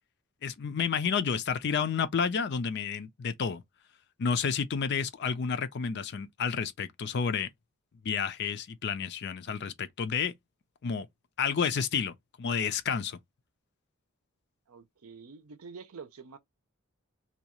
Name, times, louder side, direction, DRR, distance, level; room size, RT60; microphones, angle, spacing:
voice 1, 0.4-3.6 4.2-7.5 8.0-10.3 10.8-11.1 11.4-13.2, left 6 dB, 50° left, 0.4 m, -30 dB
voice 2, 14.7-16.4, right 5 dB, 75° right, 0.6 m, -47 dB
2.8 x 2.3 x 2.9 m
head